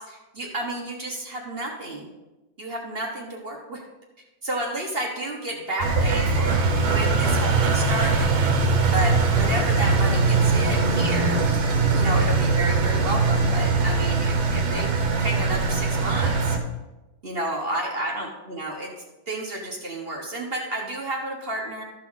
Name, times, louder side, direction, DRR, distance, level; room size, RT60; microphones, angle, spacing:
voice 1, 0.0-2.1 2.6-3.8 4.4-8.3 8.9-11.4 11.9-14.9 15.2-16.6 17.2-18.9 19.3-21.8, right 1 dB, 35° right, -1 dB, 1.3 m, -31 dB
Engine, 5.8-16.6, right 3 dB, 65° right, 1.7 m, -21 dB
13.5 x 5.7 x 4.0 m, 1.0 s
omnidirectional pair, 2.2 m